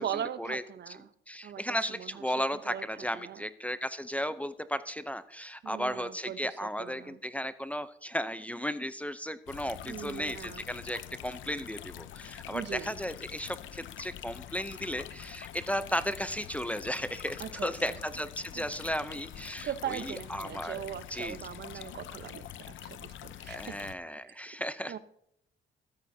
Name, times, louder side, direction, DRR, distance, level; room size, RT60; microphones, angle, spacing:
voice 1, 0.0-1.1 1.4-1.6 1.9-2.3 2.5-3.5 5.6-7.2 9.9-10.7 12.5-13.0 17.4-18.0 18.5-18.7 19.6-23.8 24.2-25.0, right 10 dB, 60° right, 13 dB, 0.8 m, -40 dB
voice 2, 1.3-20.8 21.1-21.4 23.5-24.9, equal, 5° left, 13 dB, 0.6 m, -35 dB
sound 1, 9.5-23.9, left 12 dB, 75° left, 0.7 m, -45 dB
15.0 x 13.0 x 2.7 m, 0.73 s
cardioid pair, 90°, 20 cm